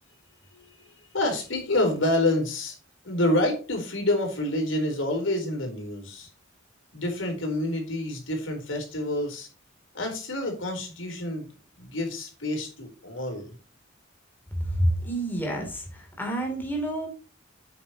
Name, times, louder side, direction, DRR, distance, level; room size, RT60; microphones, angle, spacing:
voice 1, 0.5-0.9 1.1-2.8 3.0-6.3 6.9-9.5 9.9-11.5 11.8-13.5, left 1 dB, 70° left, 3 dB, 4.2 m, -28 dB
voice 2, 14.5-17.1, right 1 dB, 10° left, 1 dB, 3.4 m, -28 dB
8.7 x 8.7 x 3.1 m, 0.31 s
head